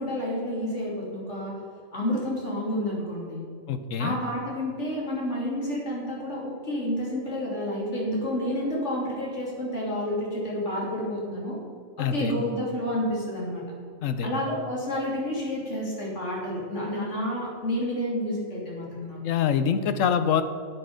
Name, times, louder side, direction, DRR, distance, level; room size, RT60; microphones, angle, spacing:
voice 1, 0.0-1.5 1.9-3.4 4.0-11.6 12.0-13.6 14.2-19.2, left 1 dB, 65° left, -5 dB, 3.5 m, -30 dB
voice 2, 3.7-4.2 12.0-12.3 14.0-14.3 19.2-20.4, left 7 dB, 80° left, 10 dB, 1.2 m, -25 dB
12.0 x 8.3 x 5.0 m, 2.3 s
omnidirectional pair, 1.3 m